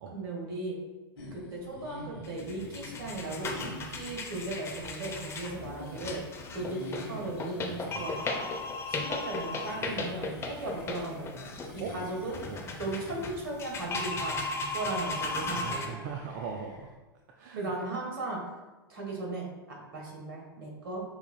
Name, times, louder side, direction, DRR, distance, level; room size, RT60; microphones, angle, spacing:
voice 1, 0.1-0.8 1.3-6.2 6.5-8.5 8.9-12.4 12.8-14.4 14.7-15.9 17.5-18.4 18.9-21.0, right 2 dB, 65° right, -2 dB, 1.4 m, -37 dB
sound 1, 1.2-16.9, left 1 dB, 65° left, 1.1 m, -47 dB
sound 2, 2.2-15.9, left 3 dB, 20° left, 0.6 m, -36 dB
voice 2, 15.4-16.9 17.4-17.7, right 6 dB, 50° right, 2 dB, 0.4 m, -39 dB
5.9 x 3.4 x 2.3 m, 1.2 s
figure-of-eight pair, 95°, 13 cm